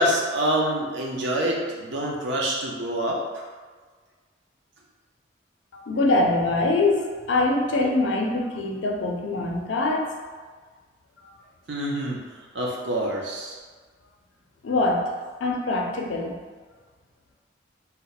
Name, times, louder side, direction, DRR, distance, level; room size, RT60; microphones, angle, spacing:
voice 1, 0.0-3.2 11.7-12.2 12.5-13.6, right 1 dB, 70° right, -2 dB, 0.6 m, -26 dB
voice 2, 5.7-10.1 14.6-16.4, left 2 dB, 80° left, 1 dB, 0.5 m, -24 dB
2.8 x 2.1 x 4.0 m, 1.5 s
head